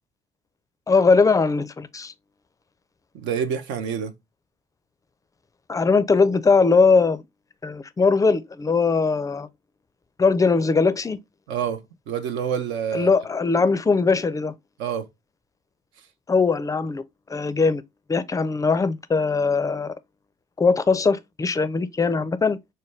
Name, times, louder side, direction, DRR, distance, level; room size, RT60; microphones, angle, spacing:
voice 1, 0.9-2.1 5.7-7.2 7.6-9.5 10.2-11.2 12.9-14.5 16.3-17.0 17.3-17.8 18.1-19.9 20.6-22.6, left 4 dB, 15° left, 0.4 m, -20 dB
voice 2, 3.1-4.1 11.5-13.1 14.8-15.1, right 7 dB, 65° right, 0.6 m, -27 dB
4.9 x 2.2 x 3.2 m
hypercardioid pair, 55°, 20 cm